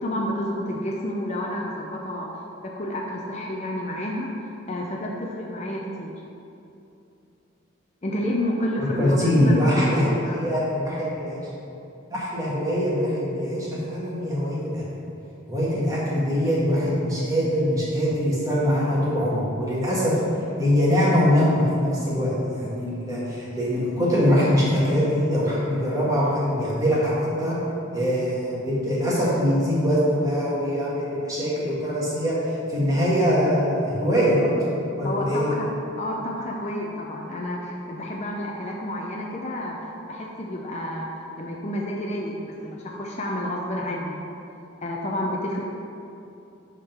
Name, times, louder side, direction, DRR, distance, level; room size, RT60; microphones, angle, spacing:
voice 1, 0.0-2.3 2.6-4.3 4.7-6.1 8.0-9.9 10.2-10.3 35.0-35.7 36.0-39.8 40.1-41.1 41.4-44.3 44.8-45.6, left 1 dB, 35° left, -1 dB, 0.5 m, -30 dB
voice 2, 8.8-11.4 12.1-14.8 15.5-20.2 20.6-27.5 27.9-32.4 32.7-34.5 35.0-35.5, equal, 15° right, -7 dB, 1.6 m, -23 dB
8.2 x 3.7 x 5.8 m, 2.8 s
head